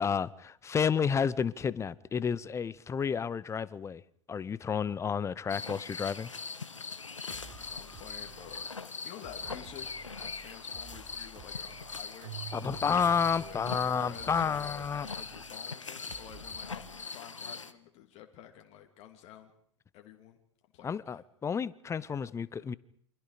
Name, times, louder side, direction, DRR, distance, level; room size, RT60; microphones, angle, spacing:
voice 1, 0.0-4.0 4.3-6.3 12.5-15.1 20.8-22.7, left 6 dB, 20° left, 20 dB, 0.9 m, -31 dB
sound 1, 5.5-17.7, left 5 dB, 90° left, 1.3 m, -41 dB
sound 2, 7.1-16.9, right 6 dB, 40° right, 4.4 m, -53 dB
voice 2, 7.7-8.7 9.0-9.9 10.2-12.3 12.9-19.5 19.9-20.4 20.7-21.2 22.3-22.7, left 11 dB, 45° left, 3 dB, 3.1 m, -50 dB
Keyboard (musical), 12.2-14.5, right 14 dB, 60° right, 2.0 m, -47 dB
28.5 x 25.5 x 5.1 m, 0.63 s
figure-of-eight pair, 95°, 16 cm